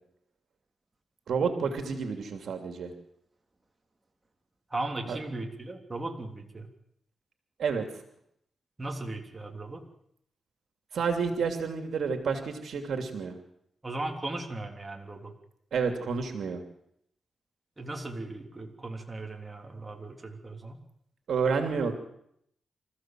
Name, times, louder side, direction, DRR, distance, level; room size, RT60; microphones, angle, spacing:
voice 1, 1.3-2.9 5.1-5.2 7.6-7.9 10.9-13.4 15.7-16.6 21.3-21.9, right 5 dB, 75° right, 5 dB, 2.9 m, -29 dB
voice 2, 4.7-6.7 8.8-9.8 13.8-15.3 17.8-20.8, right 2 dB, 20° right, 2 dB, 3.3 m, -37 dB
26.0 x 15.0 x 7.7 m, 0.73 s
cardioid pair, 90°, 0 cm